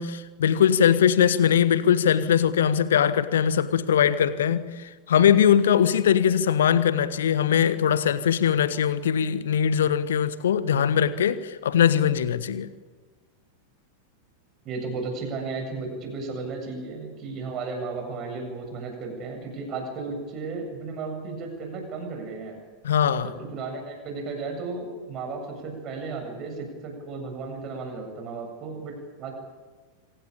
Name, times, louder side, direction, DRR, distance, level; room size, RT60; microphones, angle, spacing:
voice 1, 0.0-12.7 22.8-23.3, left 8 dB, 60° left, 14 dB, 1.3 m, -21 dB
voice 2, 14.6-22.5 23.2-29.4, right 4 dB, 35° right, 3 dB, 7.9 m, -34 dB
26.5 x 17.0 x 8.8 m, 1.3 s
figure-of-eight pair, 90°, 0 cm